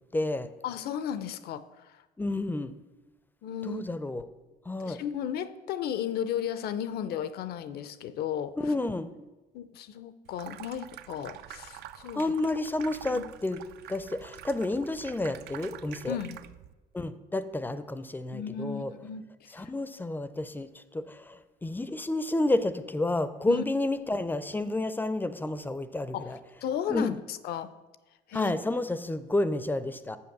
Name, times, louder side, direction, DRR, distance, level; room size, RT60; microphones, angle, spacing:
voice 1, 0.1-0.5 2.2-2.7 3.6-4.3 4.7-5.0 8.6-9.1 12.2-13.6 13.9-16.2 16.9-18.9 19.5-26.4 26.9-27.1 28.3-30.2, left 2 dB, 10° left, 13 dB, 0.4 m, -30 dB
voice 2, 0.6-2.0 3.4-3.8 4.8-8.6 9.5-12.2 13.0-13.2 16.1-16.4 18.3-19.7 23.5-23.6 26.1-26.3 26.6-27.7 28.3-28.5, left 9 dB, 70° left, 14 dB, 0.5 m, -35 dB
Water tap faucet / Sink (filling or washing), 10.3-16.7, right 12 dB, 75° right, 0.4 m, -46 dB
7.1 x 5.6 x 6.6 m, 1.1 s
cardioid pair, 110°, 17 cm